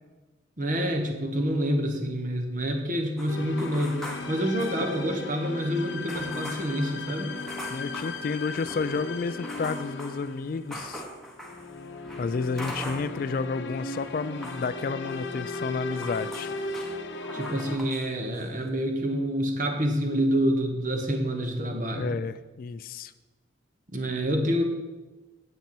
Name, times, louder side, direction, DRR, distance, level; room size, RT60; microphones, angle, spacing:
voice 1, 0.6-7.3 17.3-22.1 23.9-24.6, equal, 40° right, 5 dB, 1.1 m, -27 dB
sound 1, 3.2-5.2 5.5-5.6 6.1-13.5 13.7-18.1 18.3-18.7, equal, ahead, 1.1 m, -43 dB
sound 2, 3.3-17.8, left 3 dB, 65° left, 0.8 m, -37 dB
voice 2, 7.7-11.0 12.2-16.5 22.0-23.1, left 4 dB, 45° left, 14 dB, 0.3 m, -31 dB
9.1 x 8.5 x 4.4 m, 1.2 s
head